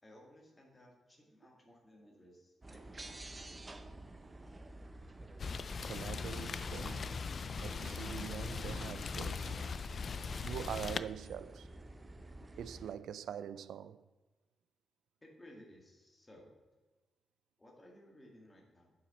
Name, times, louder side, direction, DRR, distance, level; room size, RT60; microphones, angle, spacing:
voice 1, 0.0-3.7 15.2-16.5 17.6-18.9, left 1 dB, 15° left, 2.1 m, -59 dB
sound 1, 2.6-12.9, right 2 dB, 20° right, 0.6 m, -51 dB
Rain, 5.4-11.0, left 5 dB, 40° left, 0.3 m, -40 dB
voice 2, 5.9-7.3 7.6-11.7 12.6-14.0, right 9 dB, 90° right, 0.4 m, -44 dB
8.8 x 7.2 x 4.2 m
wide cardioid pair, 145°, 0 cm